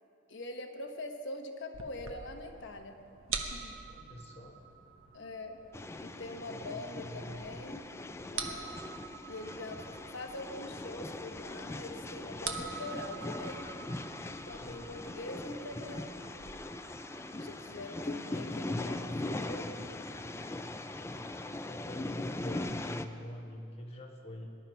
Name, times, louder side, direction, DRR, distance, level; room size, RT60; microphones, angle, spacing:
voice 1, 0.3-2.9 3.3-3.8 5.1-5.6 6.0-7.9 8.3-8.7 9.3-9.8 10.1-13.7 14.2-16.2 17.3-19.8, left 2 dB, 60° left, 4 dB, 1.2 m, -43 dB
sound 1, 1.7-16.5, right 5 dB, 80° right, 1.1 m, -45 dB
voice 2, 3.9-4.6 6.4-7.4 14.6-15.0 17.3-17.6 18.1-18.7 21.6-24.5, equal, 30° left, -1 dB, 1.7 m, -46 dB
sound 2, 5.7-23.0, left 2 dB, 15° left, 0.4 m, -40 dB
sound 3, 14.5-21.7, right 2 dB, 60° right, 1.7 m, -59 dB
19.5 x 11.5 x 4.7 m, 2.5 s
head